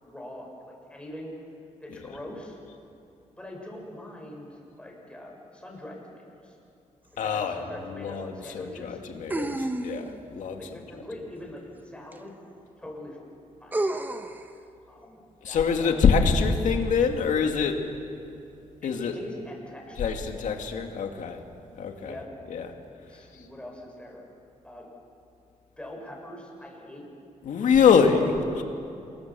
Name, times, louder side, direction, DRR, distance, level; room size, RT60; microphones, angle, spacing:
voice 1, 0.0-1.5 1.8-2.6 3.4-6.6 7.2-9.0 10.6-12.3 12.8-13.2 13.6-14.0 14.5-16.1 18.8-20.1 22.0-22.3 23.1-24.2 24.6-24.9 25.8-27.1, left 1 dB, 10° left, -1 dB, 6.1 m, -43 dB
voice 2, 7.2-10.6 15.4-17.9 18.8-19.2 20.0-21.4 21.7-22.2 22.5-22.7 23.3-23.5 27.4-28.6, left 6 dB, 75° left, 4 dB, 2.4 m, -24 dB
sound 1, 7.2-7.3 9.3-10.2 12.1-12.2 13.7-14.4, right 2 dB, 15° right, 1.2 m, -30 dB
28.0 x 22.0 x 7.0 m, 2.8 s
cardioid pair, 130°, 13 cm